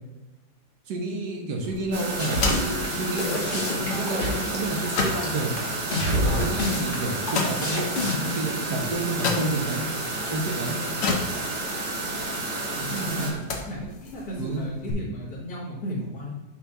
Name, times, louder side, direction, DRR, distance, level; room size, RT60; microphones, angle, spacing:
voice 1, 0.9-5.5 6.1-9.9 10.3-10.8 12.9-13.5 14.4-14.6, right 2 dB, 70° right, 1 dB, 1.6 m, -30 dB
sound 1, 1.6-14.9, left 4 dB, 55° left, 1.1 m, -34 dB
sound 2, 1.9-13.3, right 2 dB, 50° right, 1.6 m, -31 dB
sound 3, 2.2-8.3, left 1 dB, 35° left, 1.1 m, -27 dB
voice 2, 12.8-13.3 13.7-16.3, equal, 75° left, -9 dB, 2.1 m, -34 dB
7.0 x 2.4 x 5.6 m, 1.1 s
omnidirectional pair, 1.8 m